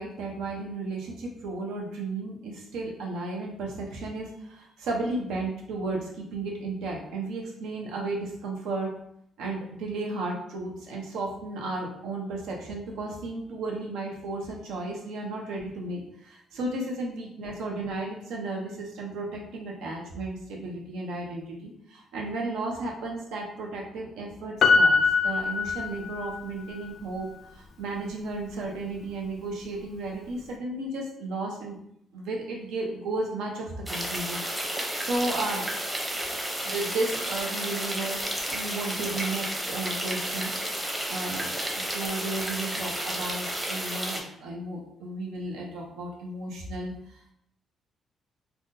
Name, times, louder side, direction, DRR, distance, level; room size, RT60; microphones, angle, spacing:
voice 1, 0.0-8.9 9.4-24.9 25.2-27.3 27.5-31.8 32.1-34.4 34.7-35.7 36.6-40.5 41.1-46.9, right 2 dB, 90° right, -1 dB, 0.8 m, -34 dB
Piano, 24.6-26.4 26.7-26.8, left 4 dB, 60° left, 0.3 m, -22 dB
sound 1, 33.9-44.2, right 1 dB, 10° right, 0.7 m, -32 dB
3.5 x 2.3 x 2.7 m, 0.73 s
cardioid pair, 90°, 0 cm